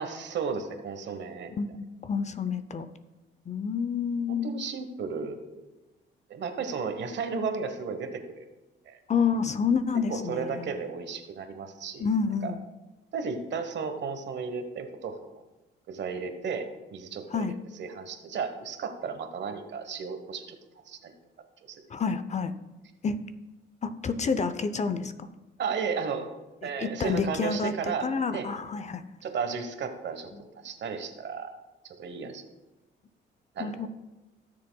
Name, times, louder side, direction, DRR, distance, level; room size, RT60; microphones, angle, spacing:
voice 1, 0.0-1.6 4.3-5.6 6.3-8.4 8.9-9.0 10.1-12.1 12.4-12.5 13.1-15.4 15.9-17.5 17.7-20.6 20.9-21.1 21.7-21.8 25.6-26.3 26.6-28.1 28.3-28.5 29.2-31.5 31.8-32.5 33.5-33.9, right 5 dB, 65° right, 7 dB, 1.1 m, -34 dB
voice 2, 1.6-2.9 3.5-4.5 9.1-10.7 12.0-12.6 17.3-17.5 21.9-22.5 23.0-23.2 23.8-25.3 26.8-29.0 33.6-33.9, left 5 dB, 35° left, 11 dB, 0.6 m, -29 dB
16.0 x 6.8 x 2.3 m, 1.1 s
cardioid pair, 90°, 20 cm